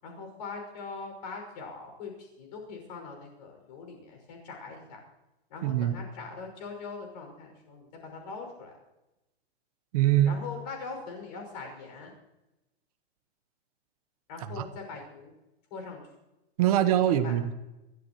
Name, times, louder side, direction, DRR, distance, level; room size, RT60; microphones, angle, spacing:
voice 1, 0.0-5.0 5.5-8.7 10.2-12.1 14.3-15.3 15.7-16.0 17.0-17.3, left 4 dB, 40° left, 3 dB, 5.8 m, -41 dB
voice 2, 5.6-6.0 9.9-10.3 14.5-14.6 16.6-17.5, right 12 dB, 35° right, 9 dB, 1.0 m, -23 dB
28.5 x 13.5 x 3.0 m, 0.97 s
supercardioid pair, 180°, 33 cm